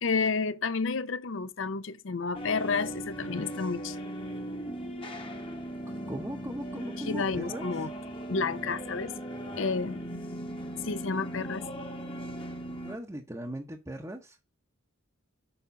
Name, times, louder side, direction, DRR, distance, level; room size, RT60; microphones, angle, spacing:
voice 1, 0.0-4.0 7.0-7.9 8.3-9.2 9.6-10.0 10.8-11.6, left 4 dB, 65° left, 0.6 m, -30 dB
sound 1, 2.3-13.0, equal, 25° left, 1.1 m, -38 dB
voice 2, 6.1-7.7 12.8-14.4, right 1 dB, 15° right, 0.7 m, -38 dB
6.9 x 5.1 x 5.2 m
head